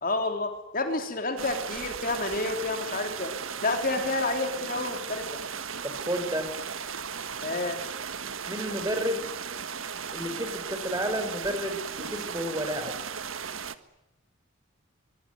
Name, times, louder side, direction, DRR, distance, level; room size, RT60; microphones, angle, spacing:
voice 1, 0.0-3.3 3.6-5.2 7.4-7.8, left 2 dB, 45° left, 6 dB, 3.5 m, -29 dB
sound 1, 1.4-13.8, right 6 dB, 80° right, 1.6 m, -36 dB
voice 2, 5.8-6.5 8.5-9.2 10.1-12.9, equal, 15° right, 8 dB, 5.1 m, -31 dB
25.0 x 23.0 x 9.4 m, 0.92 s
head